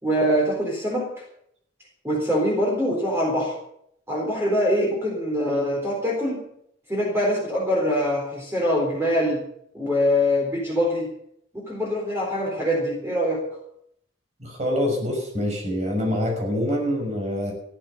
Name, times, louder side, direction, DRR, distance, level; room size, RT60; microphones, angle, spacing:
voice 1, 0.0-1.1 2.0-3.6 4.1-6.4 6.9-9.4 9.7-11.1 11.5-13.4, equal, 15° right, -3 dB, 4.0 m, -23 dB
voice 2, 14.4-17.5, left 1 dB, 35° right, 1 dB, 5.9 m, -25 dB
15.0 x 12.5 x 6.8 m, 0.71 s
head